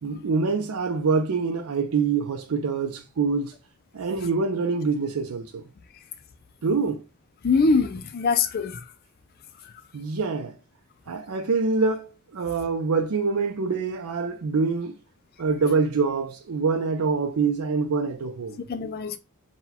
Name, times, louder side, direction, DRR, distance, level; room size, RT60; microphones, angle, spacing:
voice 1, 0.0-3.5 3.9-5.6 6.6-7.0 9.9-10.5 11.1-15.0 15.4-18.6, right 4 dB, 85° right, 0.5 m, -25 dB
voice 2, 7.4-8.8 18.7-19.2, left 4 dB, 45° left, 0.4 m, -23 dB
4.1 x 2.2 x 4.1 m
head